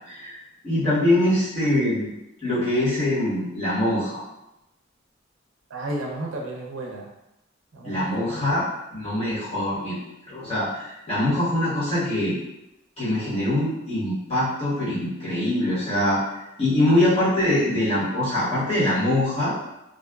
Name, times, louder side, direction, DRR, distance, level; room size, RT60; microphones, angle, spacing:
voice 1, 0.1-0.4 0.6-2.1 2.4-4.2 7.8-8.6 8.9-10.0 10.3-12.4 13.0-16.2 16.6-19.5, left 1 dB, 30° left, -11 dB, 1.2 m, -23 dB
voice 2, 5.7-7.1 7.7-8.6, right 1 dB, 75° right, -1 dB, 0.5 m, -33 dB
2.5 x 2.3 x 2.3 m, 0.91 s
head